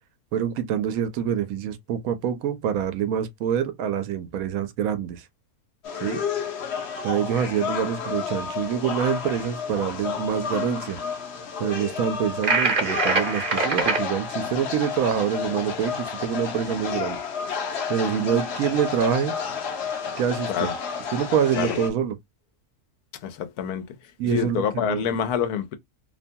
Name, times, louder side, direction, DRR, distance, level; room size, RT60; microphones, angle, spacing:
voice 1, 0.3-5.2 6.0-6.2 7.0-11.0 11.6-17.2 17.9-19.3 20.2-20.7 21.1-22.1 24.2-25.1, right 8 dB, 75° right, 1.0 m, -26 dB
Kecak - Monkey Chant, 5.8-21.9, left 6 dB, 55° left, 0.8 m, -31 dB
sound 1, 12.4-14.0, right 4 dB, 45° right, 0.8 m, -23 dB
voice 2, 23.2-24.0 24.2-25.8, left 8 dB, 85° left, 1.1 m, -27 dB
2.8 x 2.2 x 2.6 m
omnidirectional pair, 1.5 m